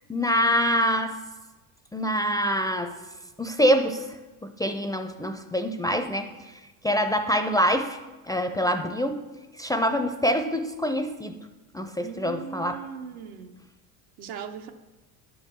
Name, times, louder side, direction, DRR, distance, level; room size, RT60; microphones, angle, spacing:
voice 1, 0.1-1.2 1.9-3.0 3.4-4.1 4.6-6.3 6.8-8.0 8.3-9.2 9.6-11.3 11.7-12.8, equal, 10° left, 6 dB, 0.4 m, -25 dB
voice 2, 12.0-13.6 14.2-14.7, right 8 dB, 80° right, 6 dB, 1.0 m, -39 dB
10.5 x 4.7 x 6.5 m, 1.1 s
supercardioid pair, 100°, 44 cm